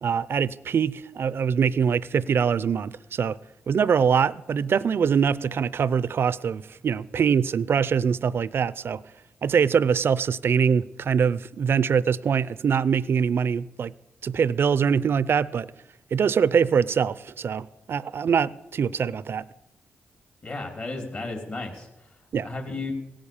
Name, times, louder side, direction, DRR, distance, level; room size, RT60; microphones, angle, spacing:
voice 1, 0.0-3.4 3.7-9.0 9.4-13.9 14.2-15.7 16.1-19.4 22.3-22.5, right 7 dB, 60° right, 0.5 m, -23 dB
voice 2, 20.4-21.9 22.4-22.9, left 2 dB, 45° left, 3.0 m, -33 dB
17.0 x 8.8 x 7.0 m
cardioid pair, 70°, 4 cm